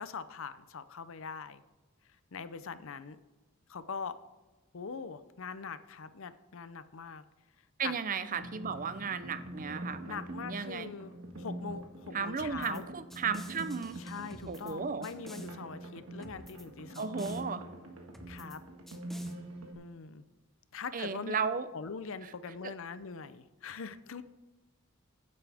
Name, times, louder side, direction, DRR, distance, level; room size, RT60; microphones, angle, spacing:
voice 1, 0.0-1.6 2.3-3.2 3.7-4.2 4.7-7.2 7.8-7.9 10.0-12.8 14.0-17.4 18.3-18.6 19.8-20.2 20.7-21.4 21.7-24.2, left 5 dB, 65° left, 13 dB, 0.6 m, -42 dB
voice 2, 7.8-10.9 12.1-14.0 14.5-15.1 17.0-17.6 20.9-21.7 22.2-22.3 22.6-22.7, right 5 dB, 40° right, 12 dB, 0.6 m, -35 dB
sound 1, 8.3-19.7, right 1 dB, 70° right, 1.6 m, -44 dB
sound 2, 12.4-12.8 13.1-14.7 15.0-15.5 16.2-16.7 16.9-17.4 18.1-18.6 18.9-19.3, equal, ahead, 0.9 m, -52 dB
15.5 x 8.6 x 3.5 m, 1.2 s
head